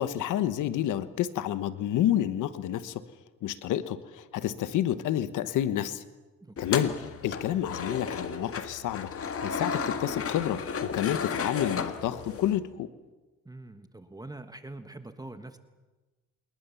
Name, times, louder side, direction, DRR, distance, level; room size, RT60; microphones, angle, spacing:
voice 1, 0.0-3.0 3.4-6.0 6.6-12.9, left 11 dB, 85° left, 13 dB, 1.2 m, -29 dB
voice 2, 6.4-6.8 13.4-15.6, right 2 dB, 10° right, 8 dB, 1.4 m, -44 dB
sound 1, 6.6-12.6, left 6 dB, 50° left, 1.9 m, -34 dB
27.0 x 20.5 x 7.1 m, 1.2 s
cardioid pair, 90°, 30 cm